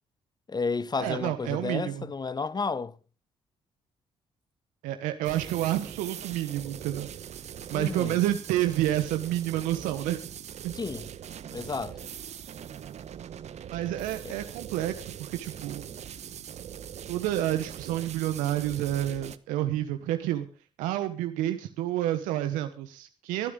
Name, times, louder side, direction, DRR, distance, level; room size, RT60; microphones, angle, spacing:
voice 1, 0.5-3.0 7.7-8.2 10.7-11.1 11.5-12.1 14.2-14.4, left 4 dB, 30° left, 1.0 m, -32 dB
voice 2, 1.0-2.1 4.8-7.1 7.7-10.2 10.6-10.7 13.7-15.9 17.1-20.5 20.8-23.5, right 13 dB, 80° right, 1.1 m, -29 dB
sound 1, 5.2-19.4, right 9 dB, 60° right, 1.1 m, -42 dB
22.5 x 12.0 x 3.8 m
hypercardioid pair, 45°, 13 cm